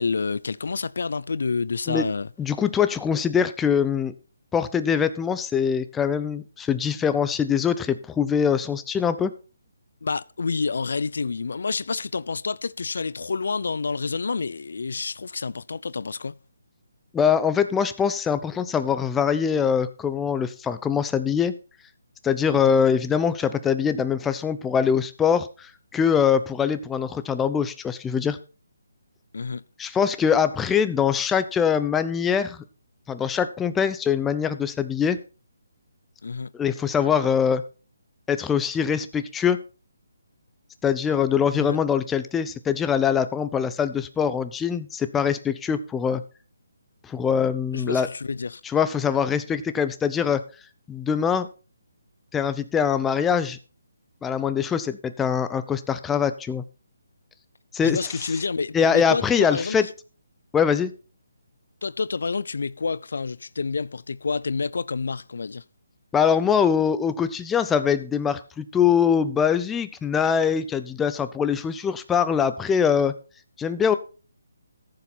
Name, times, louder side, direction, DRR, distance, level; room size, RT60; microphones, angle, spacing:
voice 1, 0.0-2.3 10.0-16.4 22.5-22.7 29.3-29.6 36.2-36.5 41.5-41.8 47.7-48.6 57.8-59.9 61.8-65.6, left 4 dB, 70° left, 0.4 m, -28 dB
voice 2, 2.4-4.1 4.5-9.3 17.1-21.5 22.2-28.4 29.8-32.6 33.1-35.2 36.5-37.6 38.3-39.6 40.8-46.2 47.0-48.1 48.6-50.4 50.9-51.5 52.3-53.6 54.2-56.6 57.7-58.1 58.7-59.9 60.5-60.9 66.1-73.1 73.6-74.0, left 7 dB, 10° left, 0.6 m, -23 dB
14.5 x 7.0 x 4.3 m
figure-of-eight pair, 155°, 0 cm